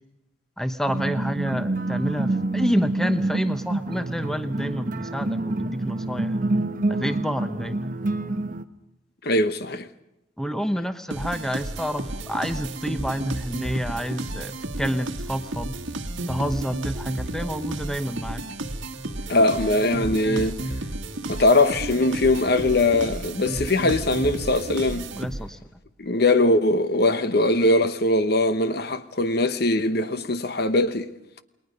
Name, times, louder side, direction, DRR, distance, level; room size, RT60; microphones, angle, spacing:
voice 1, 0.6-6.4 6.9-7.9 10.4-15.8 16.3-18.4 25.1-25.6, equal, ahead, 0.9 m, -29 dB
sound 1, 0.9-8.6, right 2 dB, 40° right, 1.0 m, -27 dB
voice 2, 9.2-9.9 19.3-20.6 21.3-25.0 26.0-31.1, left 2 dB, 50° left, 1.0 m, -21 dB
sound 2, 11.1-25.7, right 1 dB, 70° right, 1.6 m, -32 dB
29.0 x 21.0 x 5.3 m
head